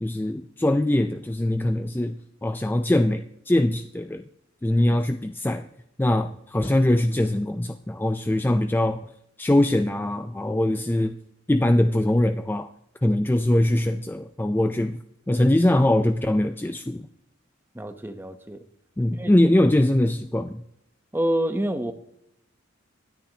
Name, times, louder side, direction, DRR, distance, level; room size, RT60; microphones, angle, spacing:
voice 1, 0.0-4.2 4.6-5.7 6.0-9.0 9.4-11.2 11.5-12.7 13.0-15.0 15.3-17.1 19.0-20.6, left 1 dB, 10° left, 8 dB, 0.4 m, -22 dB
voice 2, 17.7-18.6 19.1-19.3 19.6-19.7 21.1-21.9, right 1 dB, 10° right, 9 dB, 0.8 m, -28 dB
25.5 x 10.0 x 2.8 m, 0.78 s
head